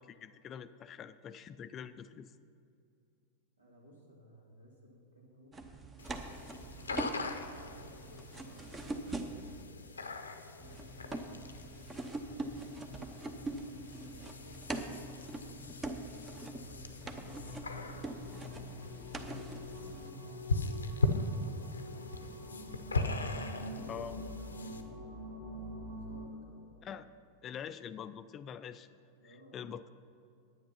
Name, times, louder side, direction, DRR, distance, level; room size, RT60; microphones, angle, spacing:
voice 1, 0.0-2.3 23.9-24.2 26.8-27.1 27.4-29.0 29.2-29.9, left 8 dB, 30° left, 13 dB, 0.4 m, -45 dB
voice 2, 3.6-5.6 6.5-9.9 10.6-11.3 12.2-18.4 19.2-22.4 23.2-27.0 29.1-29.7, right 1 dB, 80° right, -3 dB, 2.6 m, -58 dB
sound 1, 5.5-9.6 10.6-20.1, right 2 dB, 15° right, 0.8 m, -43 dB
sound 2, 6.0-24.8, left 3 dB, 75° left, 0.7 m, -40 dB
sound 3, 17.1-26.3, left 1 dB, 60° right, 2.4 m, -46 dB
10.0 x 9.4 x 5.7 m, 2.4 s
figure-of-eight pair, 90°, 0 cm